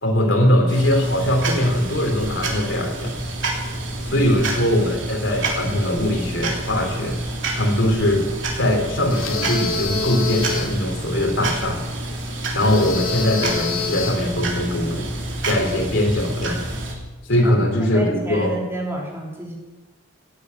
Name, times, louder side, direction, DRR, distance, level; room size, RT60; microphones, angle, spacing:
voice 1, 0.0-3.2 4.0-7.2 7.6-8.2 8.6-11.8 12.5-15.1 15.5-16.6 17.3-18.6, left 1 dB, 65° left, 3 dB, 3.1 m, -21 dB
sound 1, 0.7-16.9, right 2 dB, 65° right, 3.4 m, -28 dB
sound 2, 9.1-10.8 12.6-14.3, left 5 dB, 85° left, 2.3 m, -27 dB
voice 2, 17.9-19.6, right 2 dB, 10° right, -2 dB, 3.4 m, -30 dB
15.5 x 8.2 x 9.2 m, 1.2 s
head